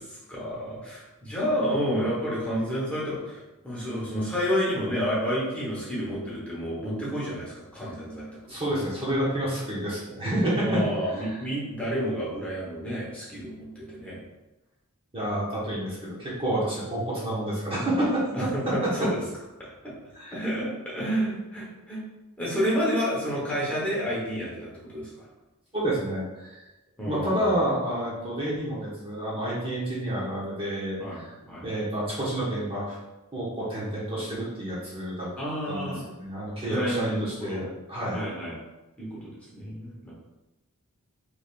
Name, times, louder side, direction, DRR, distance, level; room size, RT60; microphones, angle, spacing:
voice 1, 0.1-8.6 10.6-14.2 18.3-19.2 19.6-19.9 20.3-22.0 22.4-25.2 27.0-27.5 31.0-31.2 31.5-31.6 35.4-36.0 36.7-37.7 38.1-38.6 39.0-40.1, equal, 5° left, -7 dB, 1.1 m, -30 dB
voice 2, 8.5-10.8 11.3-11.4 15.1-18.2 18.8-18.9 20.1-20.4 25.7-26.6 27.1-31.3 31.6-33.0 33.3-35.3 35.7-38.2, right 1 dB, 25° right, -7 dB, 0.9 m, -29 dB
3.8 x 3.3 x 2.5 m, 1.0 s
head